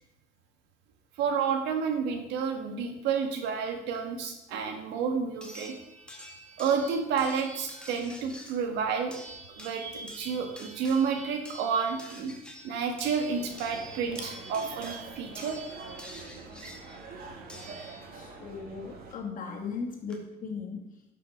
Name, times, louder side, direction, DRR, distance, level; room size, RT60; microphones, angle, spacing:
voice 1, 1.2-5.7 6.6-9.1 9.5-12.3 12.6-15.6, right 6 dB, 90° right, 4 dB, 1.8 m, -30 dB
sound 1, 3.9-4.0 5.4-18.4 19.7-19.8 20.1-20.2, equal, 5° left, 2.2 m, -47 dB
sound 2, 13.2-19.1, right 4 dB, 60° right, 2.2 m, -45 dB
voice 2, 18.1-21.0, left 5 dB, 50° left, 2 dB, 2.4 m, -38 dB
12.0 x 6.1 x 5.2 m, 0.90 s
cardioid pair, 110°, 17 cm